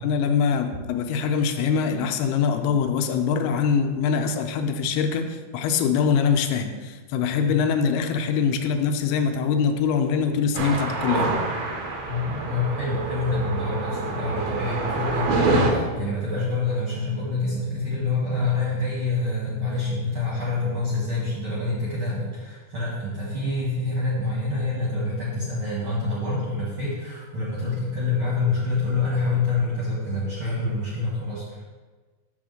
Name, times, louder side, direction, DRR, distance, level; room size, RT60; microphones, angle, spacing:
voice 1, 0.0-11.3, left 6 dB, 90° left, 6 dB, 2.6 m, -23 dB
sound 1, 10.6-15.7, right 3 dB, 80° right, 2.8 m, -26 dB
voice 2, 12.0-31.6, left 3 dB, 45° right, -7 dB, 1.9 m, -26 dB
6.9 x 3.7 x 6.3 m, 1.4 s
omnidirectional pair, 4.5 m